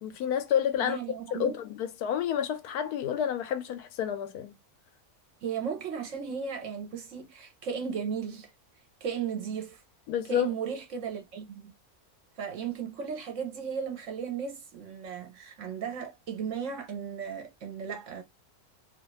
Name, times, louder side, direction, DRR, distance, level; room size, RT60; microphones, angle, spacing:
voice 1, 0.0-1.0 1.3-4.5 10.1-10.5, left 9 dB, 85° left, 1.1 m, -29 dB
voice 2, 0.8-1.5 5.4-8.5 9.0-9.8 10.2-11.7 12.4-18.2, right 7 dB, 60° right, 1.0 m, -35 dB
2.7 x 2.4 x 3.0 m
omnidirectional pair, 1.6 m